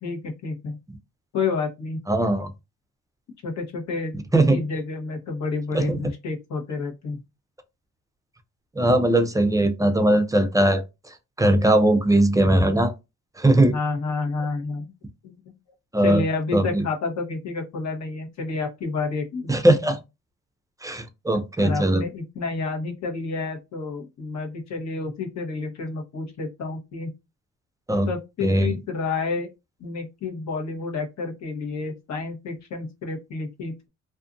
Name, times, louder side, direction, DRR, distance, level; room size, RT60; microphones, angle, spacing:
voice 1, 0.0-0.8 1.3-2.0 3.4-4.2 4.5-7.2 13.7-14.9 15.2-15.5 16.0-19.5 21.6-27.1 28.1-29.5 29.8-33.9, left 4 dB, 65° left, 1.1 m, -29 dB
voice 2, 2.1-2.5 4.3-4.6 5.7-6.0 8.8-10.8 11.4-12.9 13.4-13.7 15.9-16.2 16.5-16.8 19.5-20.0 20.8-22.0 27.9-28.1 28.4-28.8, right 1 dB, 10° right, 0.4 m, -19 dB
2.6 x 2.4 x 2.5 m
cardioid pair, 90°, 30 cm